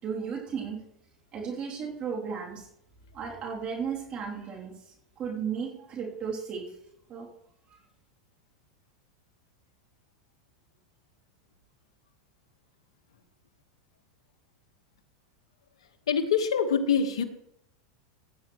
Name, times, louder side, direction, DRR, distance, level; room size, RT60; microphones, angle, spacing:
voice 1, 0.0-0.8 1.3-2.7 3.1-6.6 7.1-7.3 7.7-7.8, right 6 dB, 35° right, -3 dB, 3.1 m, -35 dB
voice 2, 16.1-17.2, left 6 dB, 90° left, 7 dB, 1.4 m, -24 dB
17.0 x 9.5 x 3.1 m, 0.77 s
hypercardioid pair, 115°, 3 cm